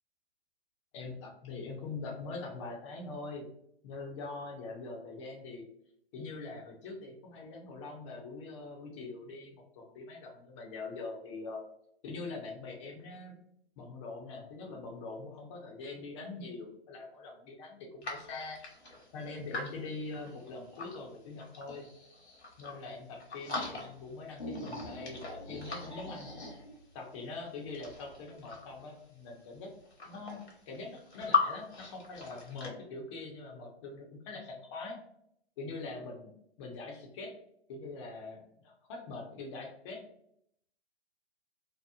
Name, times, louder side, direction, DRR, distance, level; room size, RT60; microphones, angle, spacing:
voice 1, 0.9-3.5 3.8-5.6 6.1-11.6 12.0-13.3 13.8-18.6 19.1-21.9 22.6-26.3 26.9-29.7 30.0-35.0 35.6-37.3 37.7-40.0, left 3 dB, 30° left, 0 dB, 0.6 m, -43 dB
sound 1, 18.0-21.0 21.4-22.9 23.2-24.1 24.4-26.9 27.6-28.8 29.6-29.7 29.9-31.4 31.7-32.7, left 5 dB, 75° left, 1.0 m, -38 dB
2.9 x 2.0 x 2.3 m, 0.71 s
figure-of-eight pair, 120°, 32 cm